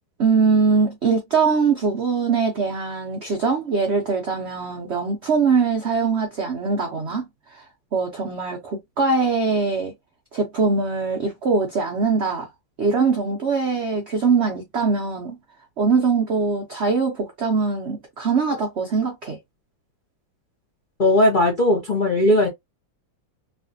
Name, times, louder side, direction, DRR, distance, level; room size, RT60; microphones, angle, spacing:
voice 1, 0.2-7.6 7.9-9.9 10.3-12.5 12.8-15.4 15.8-19.4, right 4 dB, 85° right, 0.5 m, -22 dB
voice 2, 21.0-22.5, left 1 dB, 60° left, 0.5 m, -18 dB
3.2 x 2.5 x 2.6 m
omnidirectional pair, 2.1 m